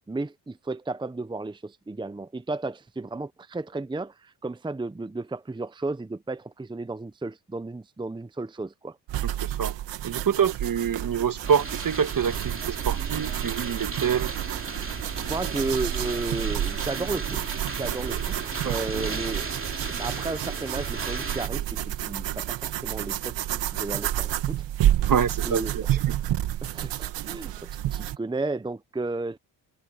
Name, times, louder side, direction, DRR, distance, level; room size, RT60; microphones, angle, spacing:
voice 1, 0.1-9.0 15.2-17.4 17.8-18.4 18.7-19.5 19.9-24.6 25.4-25.7 26.6-29.4, right 3 dB, 10° right, 0.8 m, -33 dB
sound 1, 9.1-28.2, right 12 dB, 85° right, 2.2 m, -30 dB
voice 2, 9.4-9.8 10.0-14.3 18.6-19.1 25.0-25.8, right 7 dB, 50° right, 1.7 m, -26 dB
sound 2, 11.4-21.5, right 4 dB, 30° right, 2.9 m, -35 dB
cardioid pair, 70°, 43 cm